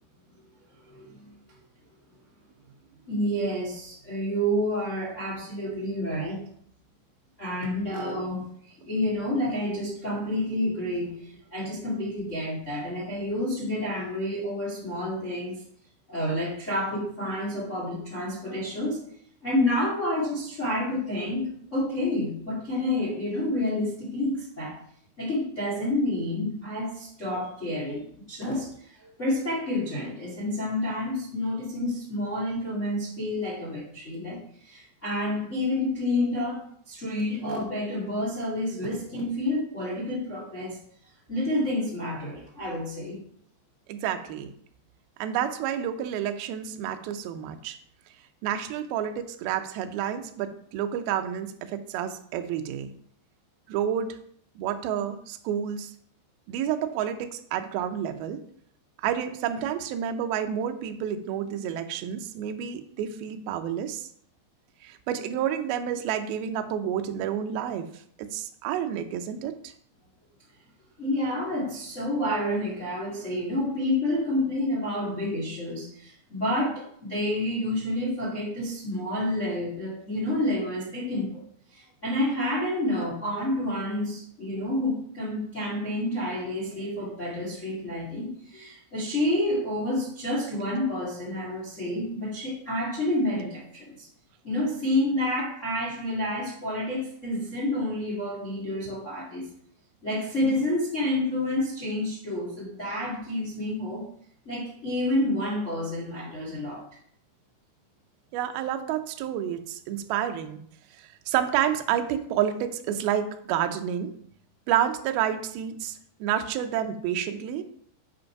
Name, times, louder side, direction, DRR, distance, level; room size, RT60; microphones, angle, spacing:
voice 1, 0.9-1.3 3.1-6.4 7.4-15.6 16.1-19.0 19.4-24.8 25.2-40.8 41.3-43.2 71.0-81.4 81.7-94.1 94.4-99.4 100.0-104.1 104.4-106.8, left 1 dB, 25° left, -5 dB, 1.5 m, -29 dB
voice 2, 43.9-44.5 45.2-47.8 48.4-52.9 53.7-54.2 54.6-55.9 56.5-58.4 59.0-64.1 64.8-69.7 108.3-110.6 111.0-114.1 114.7-117.6, right 9 dB, 85° right, 7 dB, 2.1 m, -29 dB
8.3 x 5.2 x 5.8 m, 0.62 s
omnidirectional pair, 5.2 m